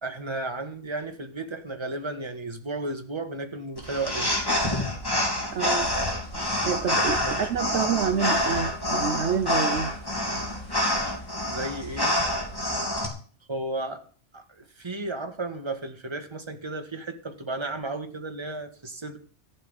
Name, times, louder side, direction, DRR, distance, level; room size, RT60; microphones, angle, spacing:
voice 1, 0.0-4.3 6.9-7.4 11.4-12.3 13.5-14.0 14.3-19.2, right 2 dB, 25° right, 1.6 m, -34 dB
sound 1, 3.8-13.1, left 1 dB, 20° left, 3.1 m, -27 dB
voice 2, 5.5-5.9 6.6-10.0, right 7 dB, 65° right, 1.1 m, -28 dB
14.0 x 5.9 x 9.7 m
omnidirectional pair, 1.3 m